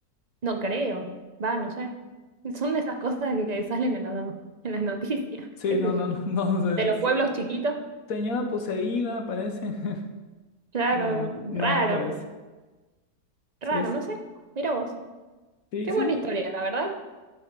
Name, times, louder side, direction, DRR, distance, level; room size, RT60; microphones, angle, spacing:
voice 1, 0.4-1.1 1.4-1.9 2.4-4.3 4.6-5.5 5.8-6.1 6.8-7.7 10.7-12.1 13.6-14.2 14.6-14.9 15.9-16.9, right 3 dB, 35° right, 4 dB, 0.7 m, -27 dB
voice 2, 5.6-6.9 8.1-10.0 10.9-12.1 13.7-13.9 15.7-16.2, left 4 dB, 65° left, 5 dB, 1.2 m, -28 dB
11.5 x 4.9 x 5.1 m, 1.2 s
omnidirectional pair, 1.7 m